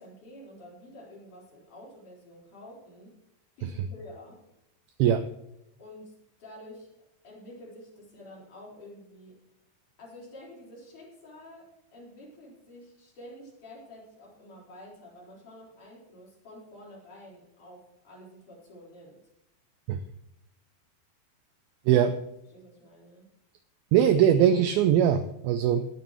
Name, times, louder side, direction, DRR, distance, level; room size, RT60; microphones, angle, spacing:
voice 1, 0.0-3.2 3.6-4.4 5.8-6.9 7.2-9.4 10.0-19.2 22.0-22.1 22.5-23.3, left 1 dB, 45° left, -5 dB, 5.6 m, -49 dB
voice 2, 23.9-25.9, right 9 dB, 90° right, 10 dB, 2.1 m, -21 dB
18.0 x 12.5 x 3.1 m, 0.85 s
omnidirectional pair, 4.9 m